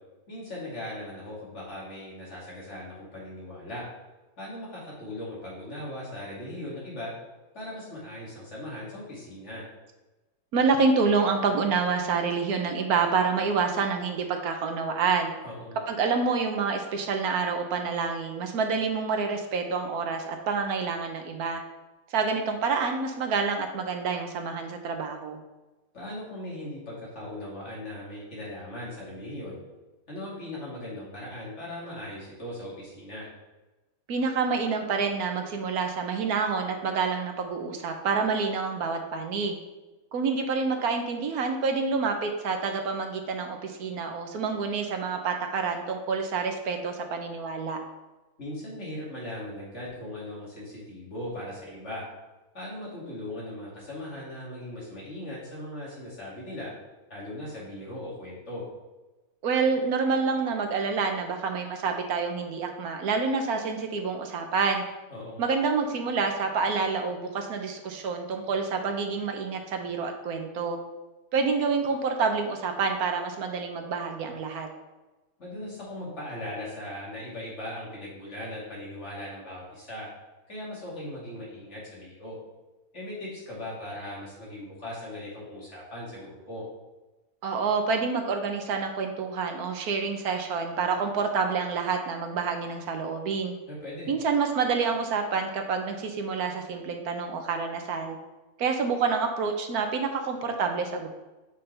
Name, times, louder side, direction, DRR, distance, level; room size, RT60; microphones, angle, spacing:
voice 1, 0.3-3.9 4.4-7.1 7.5-9.6 15.4-15.8 25.9-29.6 30.1-33.3 48.4-52.0 52.5-56.7 57.1-58.6 65.1-65.4 75.4-80.1 80.5-82.4 82.9-86.6 93.7-94.1, left 1 dB, 50° left, -6 dB, 2.7 m, -39 dB
voice 2, 10.5-15.3 15.9-21.6 22.1-25.4 34.1-39.6 40.1-47.8 59.4-64.8 65.4-70.8 71.3-74.7 87.4-93.5 94.1-98.2 98.6-101.1, right 5 dB, 80° right, 5 dB, 1.3 m, -28 dB
8.3 x 5.4 x 3.4 m, 1.1 s
omnidirectional pair, 1.6 m